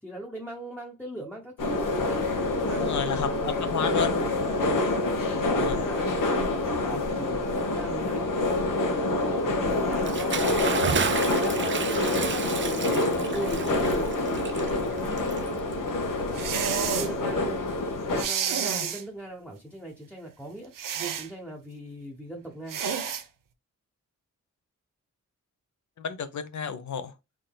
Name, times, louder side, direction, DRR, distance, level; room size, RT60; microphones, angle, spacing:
voice 1, 0.0-4.7 5.1-8.3 9.2-15.5 16.8-20.7 21.2-22.8, right 1 dB, 5° left, 0.8 m, -40 dB
sound 1, 1.6-18.2, left 2 dB, 80° left, 1.1 m, -27 dB
voice 2, 2.8-3.3 3.6-4.1 5.5-5.8 26.0-27.1, left 7 dB, 65° left, 0.7 m, -31 dB
Bathtub (filling or washing) / Splash splatter, 9.9-15.9, right 6 dB, 35° right, 0.5 m, -32 dB
sound 2, 16.3-17.1 18.1-19.0 20.8-21.3 22.7-23.2, right 8 dB, 90° right, 0.7 m, -29 dB
3.9 x 3.7 x 2.2 m
wide cardioid pair, 125°, 32 cm